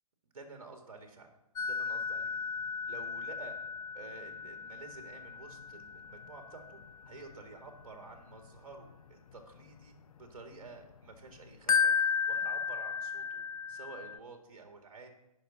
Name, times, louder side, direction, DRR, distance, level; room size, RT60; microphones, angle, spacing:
voice 1, 0.2-1.3 1.7-2.4 2.8-3.6 3.9-15.1, right 3 dB, 60° right, 4 dB, 2.1 m, -50 dB
sound 1, 1.6-11.0 11.3-14.2, left 6 dB, 65° left, 0.6 m, -35 dB
18.0 x 6.5 x 4.1 m, 0.93 s
figure-of-eight pair, 125°, 20 cm